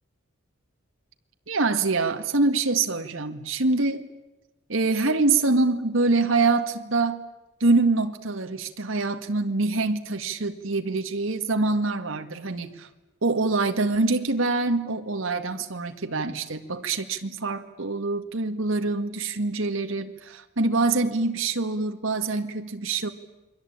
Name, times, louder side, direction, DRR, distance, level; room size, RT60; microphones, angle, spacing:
voice 1, 1.5-4.1 4.7-7.2 7.6-12.9 13.2-23.1, right 3 dB, 75° right, 6 dB, 1.9 m, -25 dB
29.0 x 22.5 x 8.8 m, 1.0 s
head